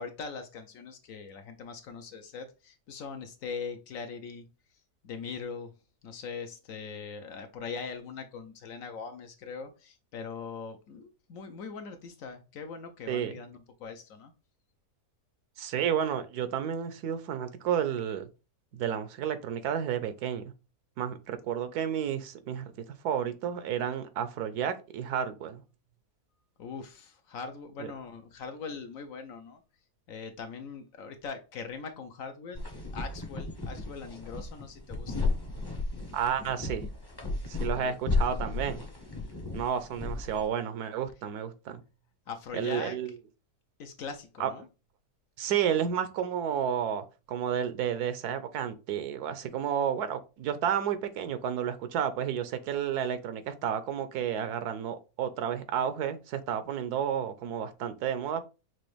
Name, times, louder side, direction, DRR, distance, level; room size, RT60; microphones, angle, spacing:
voice 1, 0.0-4.5 5.0-5.7 6.0-14.3 26.6-29.6 30.1-32.6 32.9-35.3 37.7-37.9 42.3-43.0 43.8-44.7, left 5 dB, 65° left, 1.0 m, -41 dB
voice 2, 15.6-18.3 18.7-20.5 21.0-22.7 23.0-25.6 27.8-27.9 36.1-36.8 37.5-38.8 39.5-41.8 42.5-43.1 44.4-44.5 45.4-58.4, right 8 dB, 75° right, 1.2 m, -31 dB
sound 1, 32.5-40.5, left 3 dB, 20° left, 0.6 m, -33 dB
6.1 x 2.6 x 3.2 m
omnidirectional pair, 1.7 m